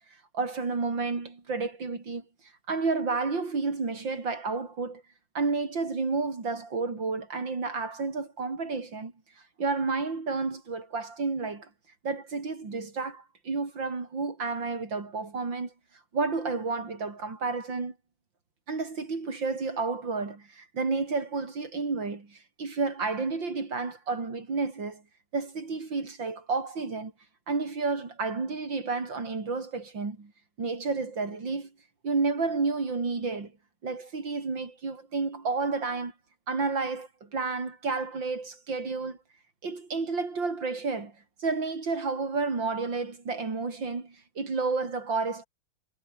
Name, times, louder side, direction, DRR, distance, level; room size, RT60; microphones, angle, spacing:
voice 1, 0.3-2.2 2.7-5.0 5.3-9.1 9.6-11.7 12.0-15.7 16.1-17.9 18.7-25.0 25.3-27.1 27.5-30.3 30.6-31.7 32.0-33.5 33.8-36.1 36.5-39.2 39.6-45.5, right 4 dB, 75° right, 4.7 m, -31 dB
omnidirectional pair, 2.1 m